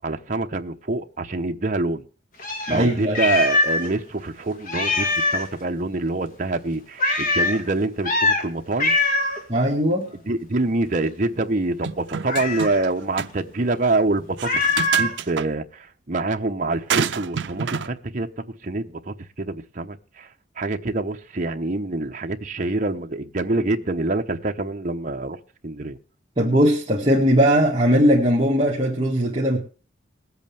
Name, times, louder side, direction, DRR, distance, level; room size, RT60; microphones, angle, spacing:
voice 1, 0.0-2.0 2.7-8.9 10.2-14.6 14.9-18.3 18.6-20.3 20.6-26.0, right 2 dB, 45° right, 0.9 m, -26 dB
Meow, 2.4-3.9 4.2-4.3 4.7-5.5 7.0-7.6 8.0-8.4 8.8-9.4 12.2-12.8 14.4-15.2, left 2 dB, 50° left, 1.9 m, -22 dB
voice 2, 2.7-3.2 9.5-10.1 26.4-29.6, equal, 30° right, 1.9 m, -19 dB
sound 1, 11.8-12.9 13.2-13.3 14.4-15.5 16.9-17.9, right 7 dB, 70° right, 0.5 m, -27 dB
20.5 x 8.2 x 3.4 m
head